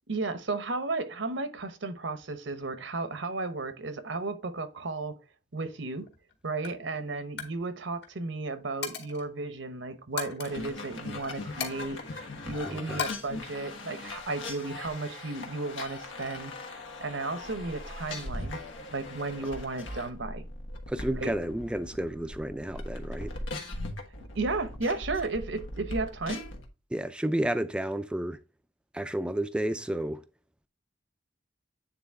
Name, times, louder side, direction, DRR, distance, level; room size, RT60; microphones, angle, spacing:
voice 1, 0.1-5.2 5.5-6.1 6.4-18.6 18.9-20.5 21.2-21.3 24.4-26.4, right 3 dB, 70° right, 0.9 m, -34 dB
Coin (dropping), 6.1-6.3 6.6-6.9 7.2-7.6 7.8-8.1 8.8-9.3 10.2-10.5 11.6-12.5 13.0-13.1, left 7 dB, 55° left, 1.9 m, -36 dB
sound 1, 10.4-26.7, left 2 dB, 85° left, 1.4 m, -40 dB
voice 2, 12.7-13.0 20.9-23.3 26.9-28.4 28.9-30.2, right 1 dB, 5° right, 0.4 m, -31 dB
9.1 x 3.9 x 3.4 m
head